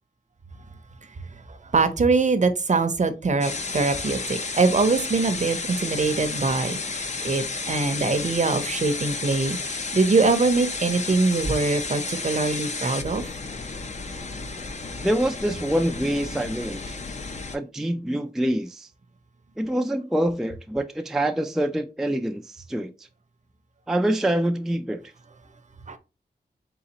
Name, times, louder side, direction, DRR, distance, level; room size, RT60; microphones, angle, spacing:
voice 1, 1.7-13.2 25.9-26.0, right 3 dB, 45° right, 0.7 m, -23 dB
sound 1, 3.4-17.6, left 3 dB, 45° left, 0.6 m, -32 dB
voice 2, 15.0-17.0 17.5-18.9 19.6-23.1 23.9-25.1, right 1 dB, 5° right, 0.4 m, -26 dB
3.9 x 3.9 x 2.9 m
wide cardioid pair, 105°, 17 cm